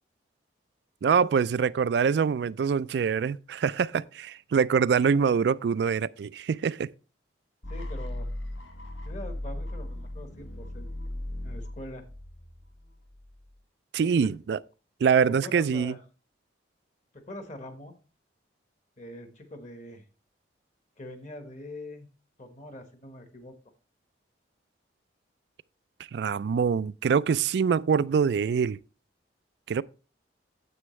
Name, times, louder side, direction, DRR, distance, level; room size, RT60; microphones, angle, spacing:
voice 1, 1.0-6.9 13.9-14.6 15.0-15.9 26.1-28.8 29.7-29.8, right 6 dB, 60° right, 0.3 m, -24 dB
sound 1, 7.6-13.6, left 1 dB, 85° left, 1.3 m, -37 dB
voice 2, 7.7-8.3 9.0-10.9 11.4-12.0 14.0-14.3 15.2-16.0 17.1-17.9 19.0-20.0 21.0-22.1 22.4-23.5, left 1 dB, 40° left, 1.2 m, -43 dB
9.6 x 7.8 x 3.1 m
head